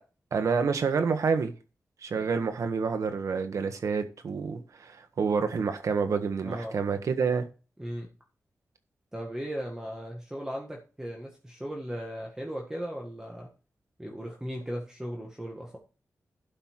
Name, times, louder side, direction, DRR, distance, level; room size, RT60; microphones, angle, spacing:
voice 1, 0.3-1.5 2.0-7.4, right 5 dB, 75° right, 1.5 m, -28 dB
voice 2, 6.4-6.8 7.8-8.1 9.1-13.5 14.0-15.8, equal, 10° right, 1.8 m, -37 dB
12.0 x 5.6 x 4.6 m
wide cardioid pair, 120°, 6 cm